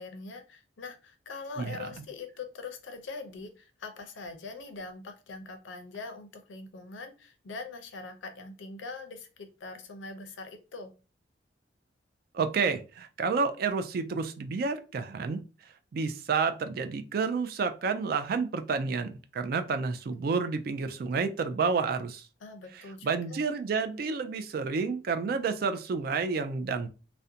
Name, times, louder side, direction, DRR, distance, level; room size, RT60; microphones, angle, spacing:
voice 1, 0.0-10.9 22.4-23.4, left 3 dB, 80° left, 6 dB, 0.5 m, -42 dB
voice 2, 1.6-2.0 12.3-15.4 15.9-22.3 23.0-26.9, right 5 dB, 50° right, 9 dB, 0.3 m, -30 dB
2.4 x 2.1 x 2.7 m, 0.32 s
head